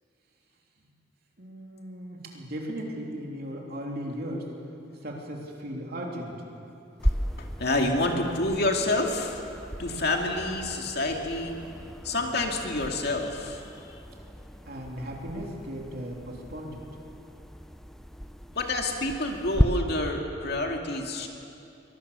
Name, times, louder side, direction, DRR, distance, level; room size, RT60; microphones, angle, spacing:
voice 1, 1.4-4.5 5.0-6.3 14.7-16.8, equal, 55° right, 0 dB, 3.3 m, -37 dB
sound 1, 7.0-19.7, equal, ahead, 0.6 m, -35 dB
voice 2, 7.4-9.4 9.8-11.6 12.0-13.7 18.5-21.3, left 2 dB, 60° left, 2 dB, 2.4 m, -28 dB
23.5 x 19.5 x 6.9 m, 2.8 s
head